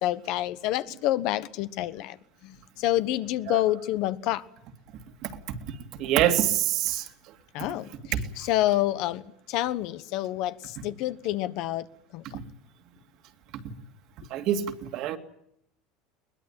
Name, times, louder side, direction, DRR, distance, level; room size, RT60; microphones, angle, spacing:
voice 1, 0.0-2.2 2.4-4.4 7.5-9.2 9.5-11.9 12.1-12.4, left 14 dB, 55° left, 1.2 m, -28 dB
voice 2, 5.7-7.1 8.1-8.2 14.3-15.2, right 11 dB, 50° right, 2.4 m, -25 dB
22.0 x 20.5 x 8.9 m
cardioid pair, 155°, 0 cm